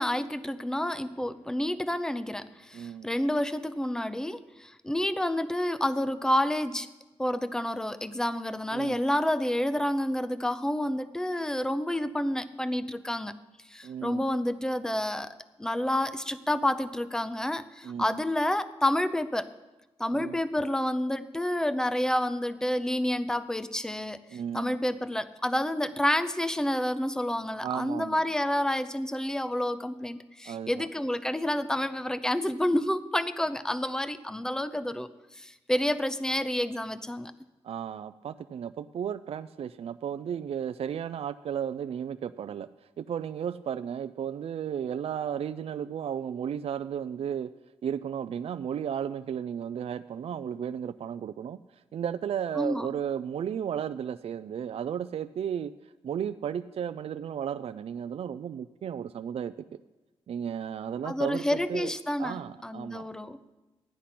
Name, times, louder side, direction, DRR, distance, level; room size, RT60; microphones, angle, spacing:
voice 1, 0.0-6.9 7.2-13.3 13.7-19.5 20.0-35.1 35.4-37.3 52.6-52.9 61.0-63.4, left 1 dB, 5° left, 12 dB, 0.6 m, -29 dB
voice 2, 2.7-3.1 8.7-9.0 13.8-14.3 17.8-18.2 20.1-20.4 24.3-24.8 27.6-28.2 30.5-30.9 37.6-42.7 43.0-47.5 47.8-51.6 51.9-55.7 56.0-59.5 60.3-61.9 62.2-63.1, right 8 dB, 65° right, 11 dB, 0.4 m, -34 dB
13.0 x 9.9 x 5.9 m, 1.1 s
wide cardioid pair, 110°, 11 cm